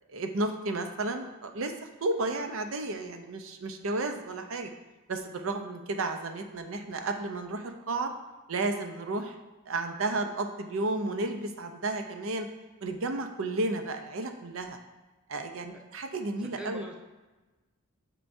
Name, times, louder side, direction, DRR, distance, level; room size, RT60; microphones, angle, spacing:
voice 1, 0.1-1.7 2.0-4.7 5.1-8.1 8.5-9.4 9.7-12.5 12.8-14.8 15.3-16.8, right 2 dB, 65° right, 6 dB, 0.6 m, -32 dB
voice 2, 16.4-17.0, right 1 dB, 5° right, 1 dB, 0.6 m, -42 dB
8.0 x 4.5 x 2.6 m, 1.2 s
head